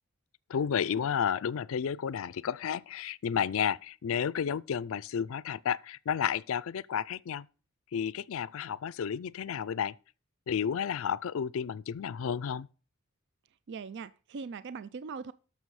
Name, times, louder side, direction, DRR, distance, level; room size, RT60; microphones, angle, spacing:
voice 1, 0.5-7.5 7.9-9.9 10.5-12.7, left 7 dB, 70° left, 0.4 m, -32 dB
voice 2, 13.7-15.3, right 5 dB, 55° right, 0.4 m, -40 dB
13.0 x 6.6 x 4.8 m
head